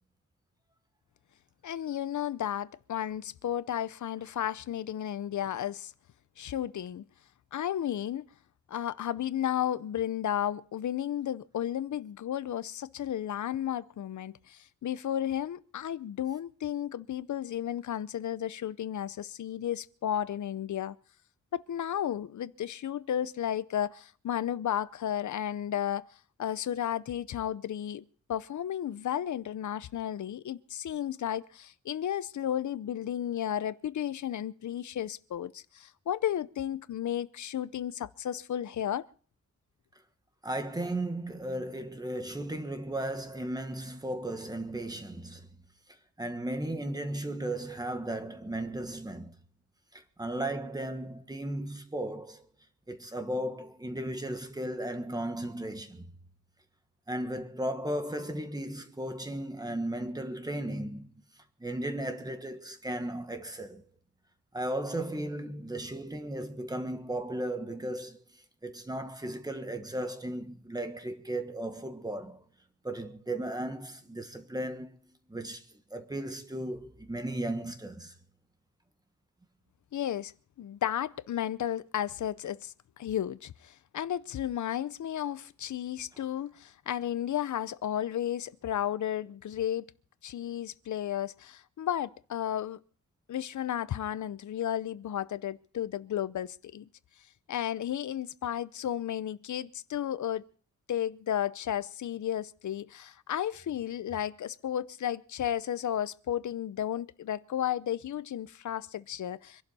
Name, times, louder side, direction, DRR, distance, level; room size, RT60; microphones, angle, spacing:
voice 1, 1.6-5.9 6.4-7.0 7.5-8.3 8.7-21.0 21.5-26.1 26.4-28.0 28.3-39.0 79.9-80.3 80.6-89.9 90.2-92.8 93.3-96.9 97.5-100.4 100.9-109.6, left 10 dB, 80° left, 0.7 m, -33 dB
voice 2, 40.4-45.6 46.2-49.4 49.9-52.4 52.9-56.1 57.1-61.1 61.6-63.8 64.5-68.2 68.6-72.4 72.8-78.1, right 1 dB, 15° right, 1.4 m, -35 dB
25.0 x 11.5 x 4.2 m
wide cardioid pair, 150°, 30 cm